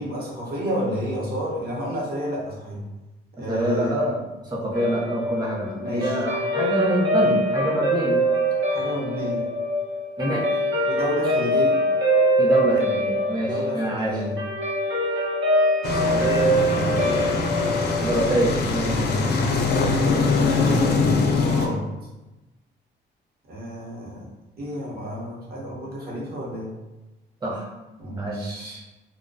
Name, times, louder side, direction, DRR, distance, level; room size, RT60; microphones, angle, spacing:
voice 1, 0.0-2.8 3.4-4.1 5.7-6.3 7.2-7.4 8.6-9.4 10.9-11.8 13.4-14.3 15.9-17.2 18.8-19.3 20.0-21.8 23.5-24.3 24.6-26.7 28.0-28.8, equal, 50° right, -5 dB, 0.9 m, -30 dB
voice 2, 3.5-4.2 4.5-8.2 10.2-10.4 12.4-14.1 18.0-19.0 27.4-27.7 28.2-28.6, right 1 dB, 20° right, -4 dB, 0.8 m, -25 dB
Guitar, 4.7-19.3, equal, 80° right, 1.0 m, -24 dB
sound 1, 15.8-21.7, left 4 dB, 55° left, 0.4 m, -22 dB
2.2 x 2.2 x 2.6 m, 1.0 s
cardioid pair, 90°, 20 cm